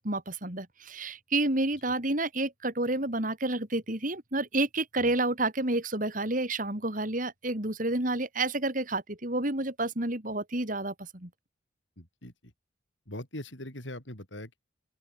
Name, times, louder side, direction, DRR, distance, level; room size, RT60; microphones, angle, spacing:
voice 1, 0.0-11.3, right 2 dB, 45° right, 3.8 m, -30 dB
voice 2, 12.0-12.5 13.1-14.6, left 1 dB, 90° left, 7.6 m, -42 dB
open air
head